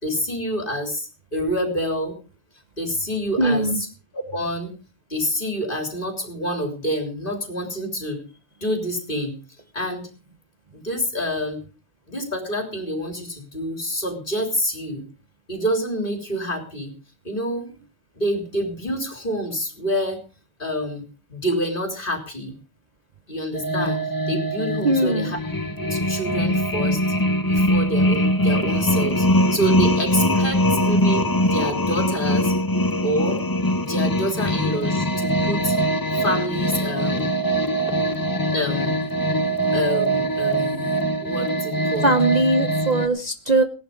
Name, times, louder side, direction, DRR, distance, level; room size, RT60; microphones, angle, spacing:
voice 1, 0.0-2.1 2.8-3.9 4.1-4.7 5.1-8.2 8.6-9.3 9.7-10.1 10.7-11.6 12.1-15.0 15.5-16.9 17.2-17.7 18.2-20.2 20.6-21.0 21.3-22.5 23.3-24.0 24.3-25.4 25.8-27.0 27.5-32.5 33.0-33.4 33.8-35.7 36.2-37.3 38.5-39.0 39.7-40.9 41.2-42.1, equal, 40° left, 4 dB, 3.6 m, -27 dB
voice 2, 3.4-3.8 24.8-25.3 42.0-43.6, right 2 dB, 35° right, 8 dB, 1.1 m, -20 dB
sound 1, 23.5-43.1, equal, 20° left, 0.9 m, -22 dB
18.0 x 11.5 x 5.1 m, 0.34 s
omnidirectional pair, 1.3 m